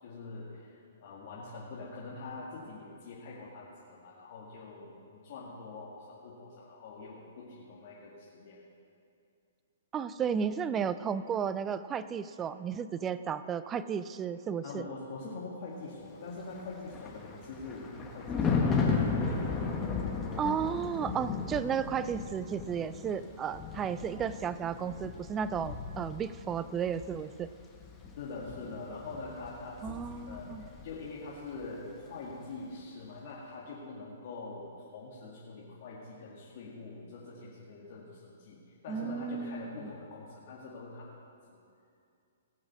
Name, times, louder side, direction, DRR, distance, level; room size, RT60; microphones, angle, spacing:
voice 1, 0.0-8.6 14.6-19.3 28.2-41.2 41.5-41.6, left 3 dB, 55° left, -6 dB, 2.2 m, -44 dB
voice 2, 9.9-14.9 20.4-27.5 29.8-30.6 38.9-39.8, right 7 dB, 20° right, 14 dB, 0.4 m, -33 dB
Thunder, 16.5-31.1 31.4-31.7, left 5 dB, 15° left, 1.6 m, -35 dB
19.0 x 6.4 x 6.2 m, 2.5 s
hypercardioid pair, 130°, 0 cm